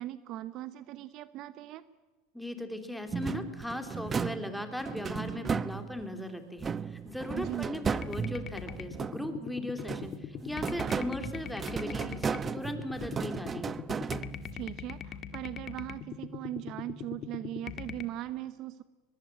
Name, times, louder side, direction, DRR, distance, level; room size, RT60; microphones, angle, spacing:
voice 1, 0.0-1.8 7.3-7.7 14.5-18.8, right 14 dB, 50° right, 15 dB, 0.9 m, -39 dB
voice 2, 2.3-13.8, left 1 dB, 5° left, 6 dB, 3.4 m, -38 dB
sound 1, 3.1-6.1 6.6-9.4 9.8-14.7, right 6 dB, 25° right, 0.9 m, -35 dB
sound 2, 8.0-18.0, left 8 dB, 40° left, 1.7 m, -42 dB
22.5 x 21.0 x 9.1 m, 1.3 s
supercardioid pair, 110°, 0 cm